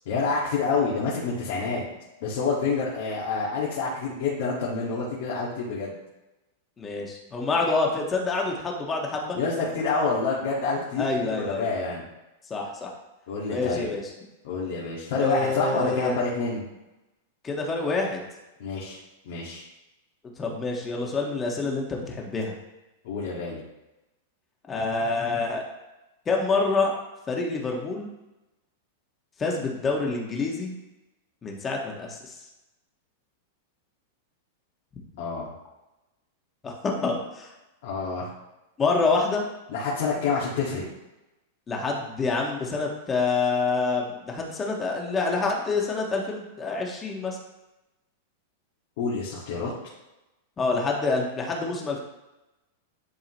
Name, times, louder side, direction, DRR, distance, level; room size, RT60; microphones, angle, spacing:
voice 1, 0.0-1.8 2.2-5.9 9.3-12.0 13.3-13.9 14.4-16.6 18.6-19.0 19.2-19.6 23.0-23.6 35.2-35.5 37.8-38.3 39.7-40.8 49.0-49.7, left 4 dB, 65° left, -6 dB, 1.8 m, -28 dB
voice 2, 6.8-9.4 11.0-11.7 12.5-12.9 13.5-14.1 15.2-16.2 17.4-18.2 20.4-22.5 24.7-25.6 26.2-26.9 27.3-28.1 29.4-30.7 31.4-32.4 36.6-37.5 38.8-39.5 41.7-47.4 50.6-52.0, left 3 dB, 20° left, -1 dB, 1.5 m, -27 dB
10.5 x 3.8 x 3.0 m, 1.0 s
hypercardioid pair, 125°, 0 cm